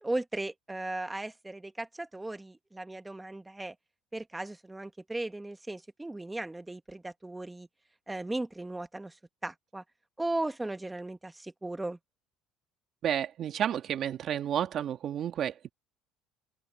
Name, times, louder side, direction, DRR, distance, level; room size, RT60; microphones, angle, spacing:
voice 1, 0.0-3.7 4.1-7.7 8.1-9.1 9.4-9.8 10.2-12.0, right 2 dB, 10° right, 1.4 m, -36 dB
voice 2, 13.0-15.7, right 9 dB, 50° right, 2.2 m, -31 dB
open air
supercardioid pair, 100°, 0 cm